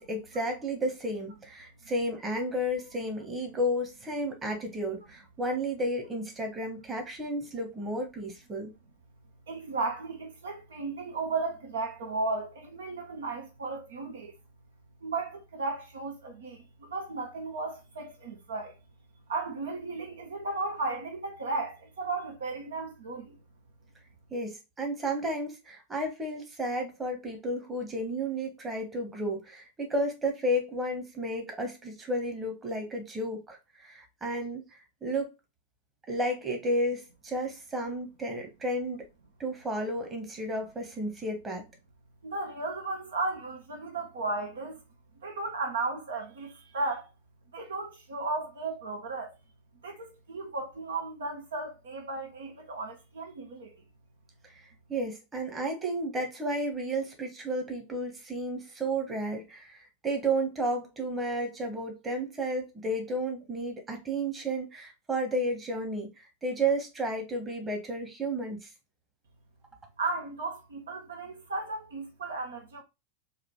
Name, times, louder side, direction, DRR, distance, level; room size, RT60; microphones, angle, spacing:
voice 1, 0.0-8.7 24.3-34.6 35.0-35.3 36.1-39.1 39.4-41.6 54.4-54.6 54.9-59.8 60.0-68.7, right 1 dB, 15° right, 1.2 m, -32 dB
voice 2, 9.5-14.3 15.0-18.8 19.3-23.4 42.2-44.8 45.2-47.1 47.5-49.4 49.8-53.8 70.0-72.8, right 3 dB, 65° right, 0.7 m, -35 dB
4.1 x 2.6 x 3.0 m
figure-of-eight pair, 90°, 0 cm